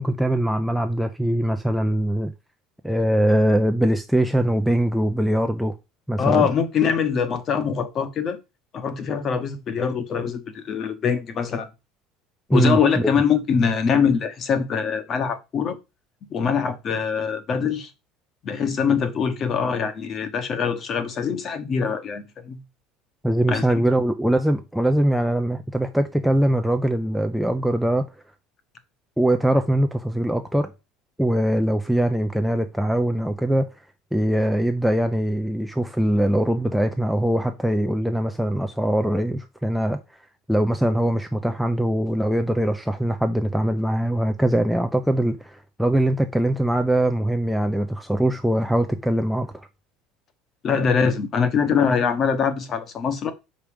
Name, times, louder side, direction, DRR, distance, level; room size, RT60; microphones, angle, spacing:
voice 1, 0.0-2.3 2.8-5.7 6.1-6.5 12.5-13.1 23.2-28.0 29.2-30.7 31.2-33.7 34.1-40.0 40.5-49.7, right 1 dB, ahead, 0.5 m, -22 dB
voice 2, 6.2-8.4 8.7-11.7 12.5-15.8 16.3-17.9 18.4-22.6 23.5-23.8 50.6-53.3, left 6 dB, 30° left, 1.0 m, -23 dB
6.0 x 5.1 x 5.1 m
cardioid pair, 175°, 0 cm